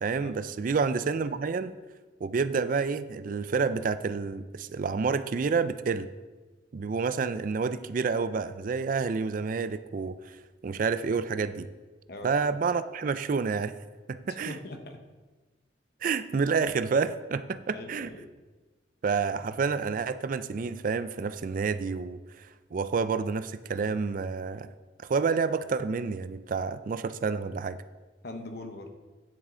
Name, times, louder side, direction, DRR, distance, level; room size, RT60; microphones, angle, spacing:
voice 1, 0.0-1.7 2.2-6.1 6.7-10.2 10.6-11.7 12.2-13.7 14.1-14.6 16.0-18.1 19.0-24.7 25.1-27.8, right 5 dB, 50° right, 13 dB, 0.4 m, -29 dB
voice 2, 14.3-15.0 17.7-18.3 28.2-28.9, left 2 dB, 60° left, 6 dB, 1.0 m, -41 dB
9.7 x 8.2 x 3.8 m, 1.3 s
head